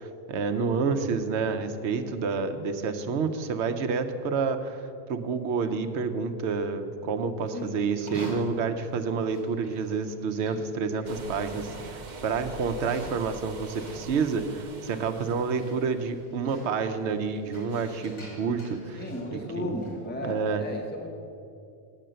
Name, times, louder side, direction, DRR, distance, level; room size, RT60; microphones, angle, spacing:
voice 1, 0.0-19.0 19.3-19.8 20.2-20.6, right 5 dB, 85° right, 8 dB, 1.0 m, -29 dB
Livestock farm animals working animals, 7.9-20.1, right 1 dB, 25° left, 2.2 m, -47 dB
sound 1, 11.0-16.1, right 3 dB, 45° right, 0.9 m, -44 dB
voice 2, 18.9-21.2, left 1 dB, 10° left, 1 dB, 1.0 m, -35 dB
9.3 x 6.7 x 7.5 m, 2.6 s
omnidirectional pair, 1.1 m